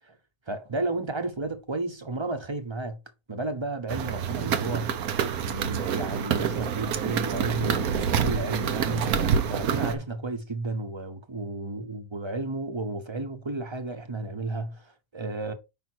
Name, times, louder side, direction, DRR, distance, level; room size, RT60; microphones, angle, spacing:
voice 1, 0.5-3.0 3.3-5.0 5.4-9.2 9.5-15.5, right 2 dB, 20° right, 0.8 m, -32 dB
sound 1, 3.9-9.9, right 7 dB, 80° right, 1.3 m, -27 dB
5.7 x 5.2 x 4.5 m
omnidirectional pair, 1.5 m